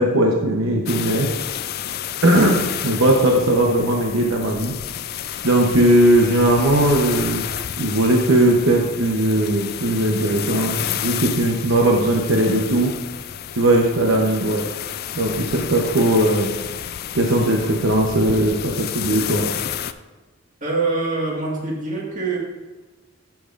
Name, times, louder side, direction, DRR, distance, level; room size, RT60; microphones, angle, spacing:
voice 1, 0.0-1.8 2.2-4.7 5.4-7.5 7.8-12.9 13.6-14.6 15.1-16.5 17.1-19.5, right 1 dB, 70° right, 0 dB, 0.9 m, -18 dB
sound 1, 0.9-19.9, left 10 dB, 45° left, 0.3 m, -30 dB
voice 2, 20.6-22.4, right 3 dB, 35° right, -3 dB, 1.8 m, -24 dB
11.5 x 7.2 x 2.5 m, 1.2 s
head